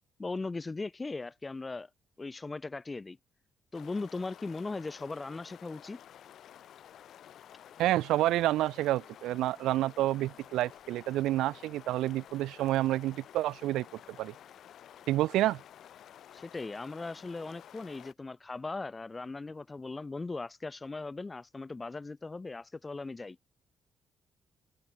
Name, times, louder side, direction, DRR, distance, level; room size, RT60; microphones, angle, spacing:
voice 1, 0.2-1.9 2.2-3.2 3.7-6.0 16.3-23.4, left 3 dB, 25° left, 0.9 m, -38 dB
sound 1, 3.7-18.1, left 10 dB, 70° left, 5.8 m, -52 dB
voice 2, 7.8-14.3 15.1-15.6, right 15 dB, 90° right, 1.1 m, -29 dB
cardioid pair, 90°, 0 cm